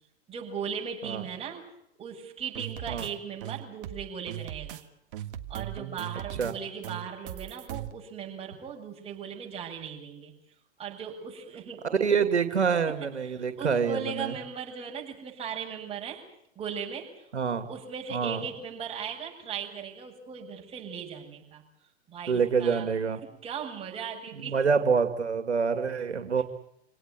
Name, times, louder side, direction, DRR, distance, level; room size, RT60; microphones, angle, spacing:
voice 1, 0.3-1.6 2.0-4.8 5.5-10.3 10.8-11.9 12.9-16.2 16.6-17.1 17.7-21.6 22.1-22.9 23.2-24.6, right 7 dB, 15° right, -1 dB, 7.5 m, -38 dB
sound 1, 2.5-3.1 3.4-4.8 5.1-6.5 6.8-7.9, right 13 dB, 50° right, 1.7 m, -38 dB
voice 2, 11.8-14.3 17.3-17.7 18.1-18.4 22.3-23.2 24.3-26.4, right 6 dB, 90° right, 8 dB, 2.6 m, -26 dB
27.0 x 18.0 x 9.9 m, 0.76 s
hypercardioid pair, 120°, 33 cm